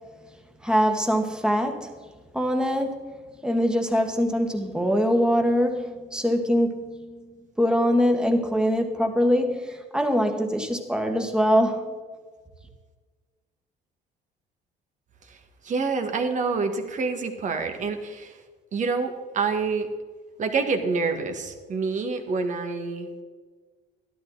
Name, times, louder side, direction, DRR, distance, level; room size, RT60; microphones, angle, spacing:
voice 1, 0.6-1.9 2.3-3.2 3.4-7.3 7.6-11.9, equal, 5° right, 4 dB, 1.7 m, -23 dB
voice 2, 15.6-18.4 18.7-19.9 20.4-23.1, right 4 dB, 45° right, 6 dB, 1.8 m, -27 dB
13.0 x 12.0 x 4.1 m, 1.4 s
cardioid pair, 110°, 17 cm